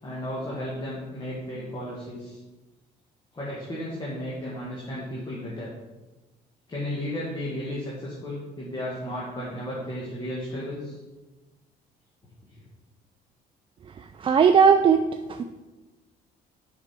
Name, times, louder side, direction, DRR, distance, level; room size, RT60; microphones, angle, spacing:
voice 1, 0.0-2.4 3.3-5.7 6.7-11.0, left 1 dB, 25° left, -5 dB, 1.8 m, -34 dB
voice 2, 14.2-15.0 15.3-15.4, right 6 dB, 30° right, 7 dB, 0.4 m, -17 dB
6.9 x 5.8 x 4.4 m, 1.1 s
cardioid pair, 110°, 17 cm